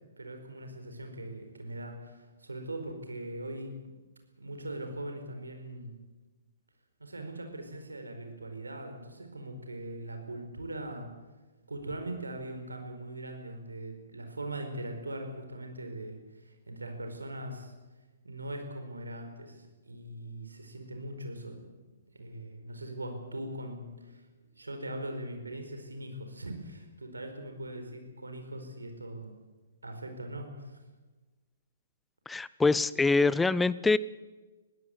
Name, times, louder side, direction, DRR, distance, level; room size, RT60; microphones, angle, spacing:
voice 1, 0.2-3.9 4.4-5.9 7.0-11.1 11.7-17.7 18.2-21.6 22.1-24.2 24.6-29.3 29.8-30.8, right 1 dB, 75° right, 5 dB, 4.7 m, -41 dB
voice 2, 32.3-34.0, left 3 dB, 5° left, 19 dB, 0.6 m, -25 dB
21.5 x 16.5 x 8.0 m, 1.2 s
figure-of-eight pair, 120°, 0 cm